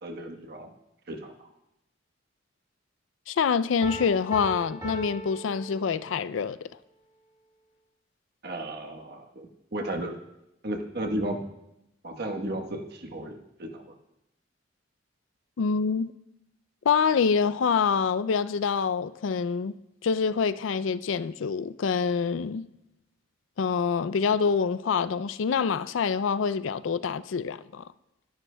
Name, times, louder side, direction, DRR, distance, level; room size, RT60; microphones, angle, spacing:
voice 1, 0.0-0.7 1.1-1.5 8.4-10.1 10.6-11.4 12.0-13.9, right 1 dB, 55° right, 1.2 m, -34 dB
voice 2, 3.3-6.7 15.6-16.1 16.9-19.8 20.0-22.7 23.6-27.8, left 6 dB, 85° left, 0.4 m, -26 dB
Piano, 3.8-6.4, left 1 dB, 20° right, 2.0 m, -39 dB
23.5 x 10.5 x 2.3 m
head